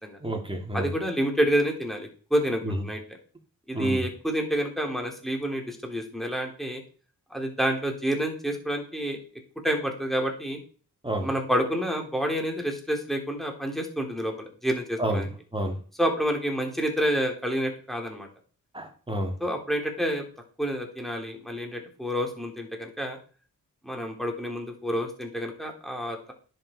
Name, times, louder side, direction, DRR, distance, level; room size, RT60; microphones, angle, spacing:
voice 1, 0.2-0.9 2.6-2.8 3.7-4.1 11.0-11.3 15.0-15.8 18.7-19.4, right 1 dB, 15° right, 2 dB, 2.8 m, -30 dB
voice 2, 0.7-3.0 3.7-6.8 7.3-9.2 9.6-10.6 11.2-15.3 16.0-18.3 19.4-20.2 20.6-23.2 23.8-26.3, equal, ahead, 2 dB, 3.1 m, -28 dB
10.5 x 6.7 x 4.4 m, 0.40 s
cardioid pair, 70°, 35 cm